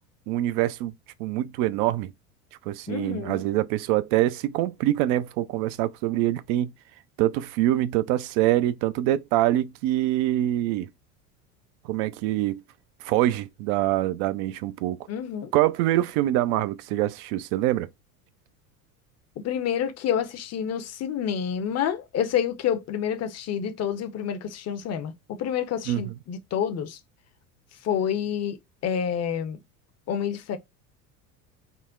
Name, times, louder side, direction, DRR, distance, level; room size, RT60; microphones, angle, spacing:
voice 1, 0.3-0.9 1.2-2.1 2.7-6.7 7.2-10.9 11.8-12.6 13.0-15.0 15.5-17.9 25.9-26.0, right 14 dB, 60° right, 0.5 m, -24 dB
voice 2, 2.9-3.4 15.1-15.5 19.4-27.0 27.8-28.6 28.8-29.6 30.1-30.6, left 8 dB, 35° left, 0.6 m, -28 dB
3.8 x 2.0 x 2.3 m
hypercardioid pair, 80°, 43 cm